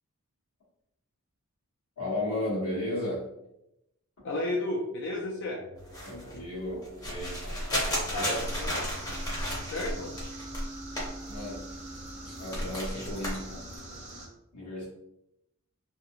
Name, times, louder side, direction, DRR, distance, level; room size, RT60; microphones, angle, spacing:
voice 1, 2.0-3.3 6.0-7.4 7.9-8.5 11.3-11.8 12.2-13.7 14.5-14.9, left 1 dB, 90° left, -7 dB, 1.3 m, -34 dB
voice 2, 4.2-5.6 7.7-8.8 9.5-10.1, left 2 dB, 50° left, -2 dB, 0.3 m, -33 dB
sound 1, 5.0-14.3, right 1 dB, 85° right, 0.7 m, -48 dB
sound 2, 5.8-11.7 12.0-13.8, equal, 15° left, 0.6 m, -34 dB
sound 3, 8.0-14.3, right 2 dB, 30° right, 0.4 m, -45 dB
2.8 x 2.1 x 2.4 m, 0.86 s
head